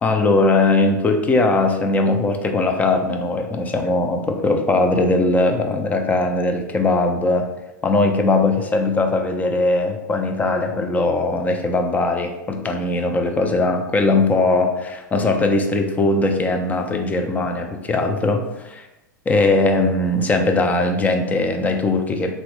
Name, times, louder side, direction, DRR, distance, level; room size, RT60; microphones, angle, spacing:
voice 1, 0.0-7.5 7.8-18.9 19.3-22.4, left 2 dB, 15° left, 4 dB, 0.4 m, -20 dB
3.2 x 2.1 x 3.0 m, 0.95 s
figure-of-eight pair, 90°, 10 cm